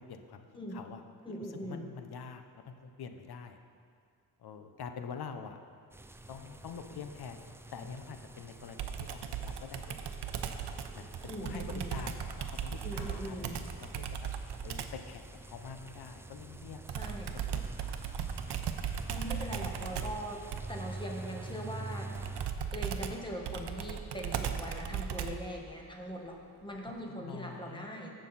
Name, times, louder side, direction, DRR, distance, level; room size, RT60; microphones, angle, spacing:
voice 1, 0.1-0.4 0.7-1.0 1.6-3.6 4.4-5.6 6.3-7.4 7.7-10.3 10.9-14.3 14.6-16.9 17.5-18.1 18.9-19.2 27.1-27.9, left 6 dB, 60° left, 7 dB, 0.9 m, -46 dB
voice 2, 1.2-1.9 11.3-12.0 12.8-13.6 16.9-17.3 19.1-20.4 20.7-22.1 22.7-28.1, equal, 10° left, 0 dB, 1.5 m, -41 dB
sound 1, 5.9-22.5, right 2 dB, 5° right, 0.3 m, -46 dB
Computer keyboard, 8.8-15.0 16.9-25.5, right 8 dB, 70° right, 0.8 m, -37 dB
16.0 x 6.4 x 4.2 m, 2.2 s
cardioid pair, 100°, 42 cm